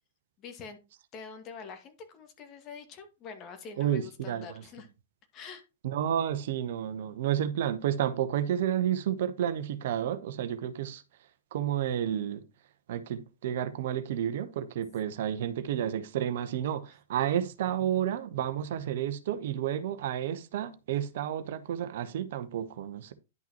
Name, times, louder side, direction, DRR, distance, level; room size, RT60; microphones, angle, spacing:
voice 1, 0.4-0.8 1.1-4.9 5.3-5.6, left 5 dB, 35° left, 2.0 m, -45 dB
voice 2, 3.8-4.5 5.8-11.0 11.5-12.4 12.9-23.1, right 10 dB, 60° right, 0.9 m, -31 dB
10.5 x 5.9 x 3.0 m
figure-of-eight pair, 105°, 0 cm